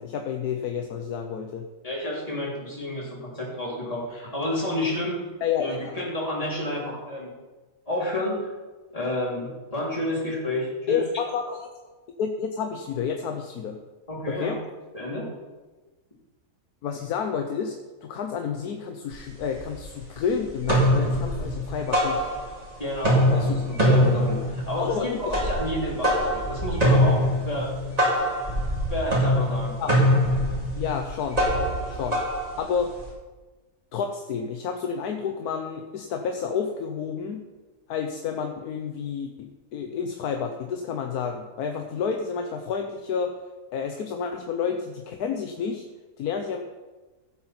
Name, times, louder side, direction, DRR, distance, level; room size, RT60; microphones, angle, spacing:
voice 1, 0.0-1.7 5.4-5.7 10.9-11.7 12.2-13.8 14.3-14.6 16.8-22.3 23.3-23.6 24.8-25.4 29.8-30.0 30.8-31.4 31.9-32.2 32.6-32.9 33.9-37.4 37.9-43.3 43.7-45.8 46.2-46.6, left 6 dB, 80° left, 5 dB, 1.3 m, -30 dB
voice 2, 1.8-5.2 5.6-7.3 7.9-8.3 8.9-11.0 14.1-14.6 14.9-15.3 22.8-24.9 25.2-27.7 28.9-29.8, left 1 dB, 25° left, -5 dB, 3.3 m, -30 dB
sound 1, 19.1-19.2 19.6-20.2 20.5-22.7 22.9-33.1, equal, 25° right, 3.0 m, -23 dB
15.5 x 7.8 x 4.4 m, 1.2 s
omnidirectional pair, 1.6 m